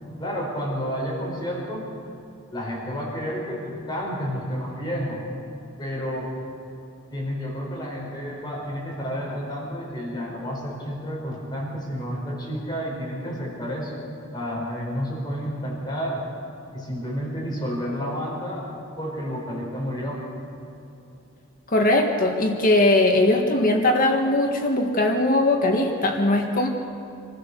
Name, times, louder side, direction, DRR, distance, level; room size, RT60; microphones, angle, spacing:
voice 1, 0.2-1.9 2.5-5.2 5.8-6.3 7.1-14.0 14.3-16.2 16.7-18.7 19.0-20.2, equal, 20° left, -4 dB, 4.9 m, -30 dB
voice 2, 21.7-26.7, left 2 dB, 40° left, 2 dB, 1.7 m, -20 dB
26.5 x 15.0 x 6.8 m, 2.8 s
head